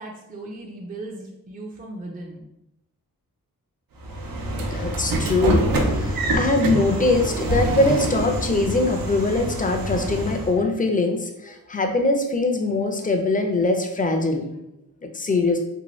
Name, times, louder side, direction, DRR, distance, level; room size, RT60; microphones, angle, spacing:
voice 1, 0.0-2.4, right 2 dB, 25° right, 0 dB, 0.5 m, -37 dB
Train / Sliding door, 4.0-10.6, right 1 dB, 75° right, 0.5 m, -25 dB
voice 2, 4.5-5.7 5.9-14.5 15.0-15.6, left 2 dB, 25° left, 4 dB, 0.5 m, -22 dB
2.7 x 2.6 x 3.0 m, 0.84 s
cardioid pair, 70°, 35 cm